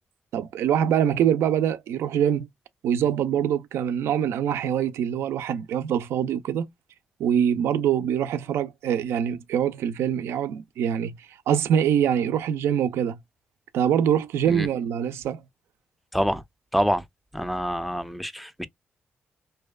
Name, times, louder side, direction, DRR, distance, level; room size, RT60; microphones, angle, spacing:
voice 1, 0.3-2.5 2.8-6.7 7.2-11.1 11.5-13.2 13.7-15.4, right 9 dB, 85° right, 0.3 m, -24 dB
voice 2, 16.7-17.0 17.3-18.7, equal, ahead, 0.4 m, -26 dB
2.6 x 2.2 x 2.2 m
cardioid pair, 70°, 4 cm